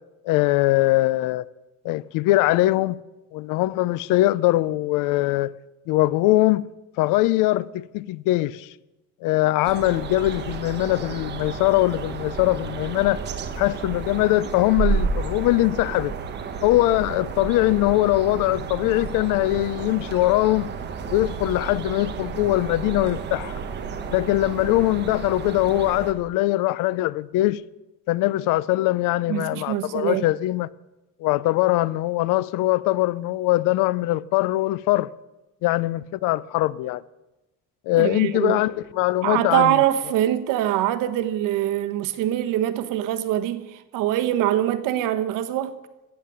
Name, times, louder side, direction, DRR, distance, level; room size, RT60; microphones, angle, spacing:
voice 1, 0.2-1.4 1.8-3.0 3.3-5.5 5.9-6.7 7.0-8.7 9.2-13.2 13.6-16.1 16.6-20.7 21.1-23.6 24.1-27.6 28.1-30.7 31.2-35.1 35.6-37.0 37.9-39.8, left 17 dB, 85° left, 0.6 m, -22 dB
sound 1, 9.6-26.1, right 6 dB, 35° right, 1.1 m, -31 dB
voice 2, 29.3-30.2 38.0-38.6 39.2-45.7, right 13 dB, 90° right, 1.2 m, -23 dB
15.5 x 7.6 x 8.3 m
cardioid pair, 180°, 31 cm